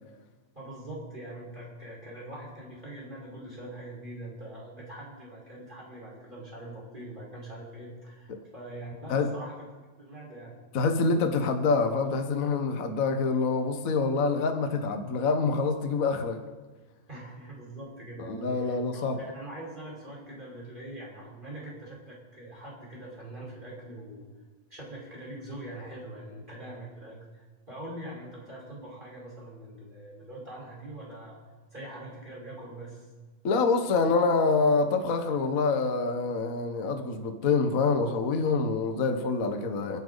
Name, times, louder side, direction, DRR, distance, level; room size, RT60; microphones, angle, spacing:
voice 1, 0.6-9.6 10.0-10.5 17.1-24.3 24.7-31.4 31.7-33.1, right 1 dB, 15° right, -5 dB, 5.4 m, -43 dB
voice 2, 10.7-16.4 18.3-19.2 33.4-40.0, left 4 dB, 65° left, 5 dB, 0.8 m, -26 dB
29.5 x 10.5 x 4.1 m, 1.3 s
omnidirectional pair, 3.8 m